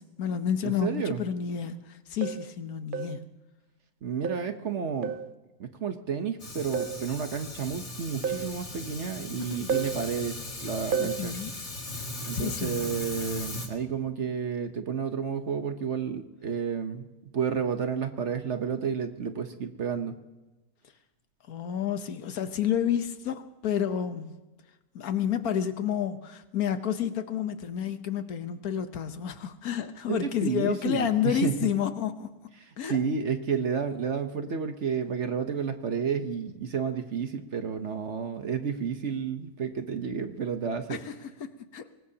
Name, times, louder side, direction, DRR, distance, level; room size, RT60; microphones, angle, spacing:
voice 1, 0.0-3.3 9.4-9.7 11.0-11.5 12.3-12.8 21.5-24.3 24.9-32.3 32.8-33.0 40.9-41.9, left 9 dB, 70° left, 1.4 m, -30 dB
voice 2, 0.6-1.2 4.0-5.1 5.6-11.3 12.2-17.1 17.3-20.2 30.1-31.7 32.8-41.0, right 6 dB, 50° right, 1.1 m, -31 dB
sound 1, 1.2-1.3 2.2-2.5 2.9-3.2 4.2-4.5 5.0-5.3 6.7-7.0 8.2-8.5 9.7-10.0 10.9-11.2, right 6 dB, 70° right, 0.5 m, -31 dB
Fire, 6.4-13.7, left 2 dB, 45° left, 2.4 m, -38 dB
23.5 x 19.5 x 2.8 m
omnidirectional pair, 1.7 m